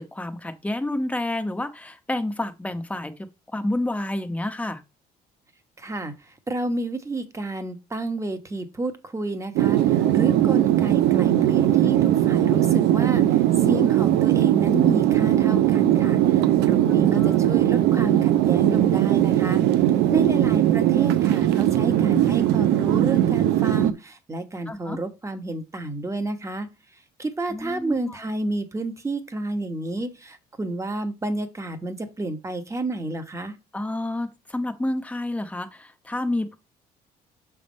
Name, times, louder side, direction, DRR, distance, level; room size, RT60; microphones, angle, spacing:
voice 1, 0.0-3.1 3.5-4.8 16.9-17.4 24.7-25.0 27.5-28.0 33.7-36.6, left 1 dB, 10° left, 0.9 m, -29 dB
voice 2, 5.8-19.6 20.1-26.7 27.2-33.6, right 2 dB, 15° right, 1.1 m, -30 dB
sound 1, 9.6-23.9, right 13 dB, 85° right, 0.6 m, -19 dB
6.4 x 3.5 x 5.2 m
cardioid pair, 110°, 17 cm